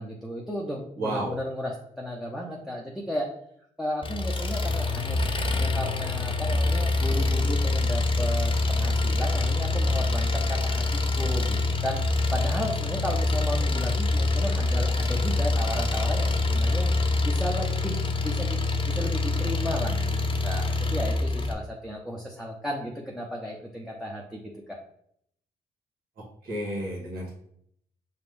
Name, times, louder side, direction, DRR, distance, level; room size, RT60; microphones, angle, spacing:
voice 1, 0.0-3.3 3.8-10.8 11.2-12.0 12.3-16.9 17.2-18.6 18.8-24.4, equal, ahead, -3 dB, 0.8 m, -34 dB
voice 2, 1.0-1.3 26.4-27.3, right 1 dB, 70° right, -5 dB, 1.4 m, -31 dB
Engine, 4.0-21.5, left 2 dB, 30° left, 0.6 m, -25 dB
5.0 x 2.3 x 3.3 m, 0.70 s
supercardioid pair, 55°, 17 cm